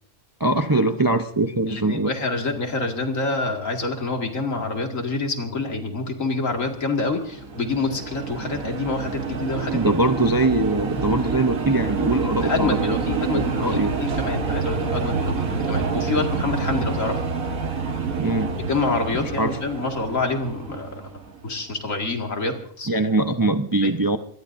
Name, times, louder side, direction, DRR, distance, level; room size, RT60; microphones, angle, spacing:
voice 1, 0.4-2.1 9.7-13.0 13.3-13.9 18.2-18.5 19.4-19.6 22.9-24.2, right 2 dB, 25° right, 7 dB, 0.5 m, -22 dB
voice 2, 1.7-9.8 12.4-17.2 18.6-21.1 21.4-22.9 23.8-23.9, left 3 dB, 70° left, 3 dB, 2.5 m, -27 dB
sound 1, 7.0-21.5, right 4 dB, 85° right, 1.8 m, -28 dB
25.0 x 20.5 x 2.6 m, 0.64 s
omnidirectional pair, 1.4 m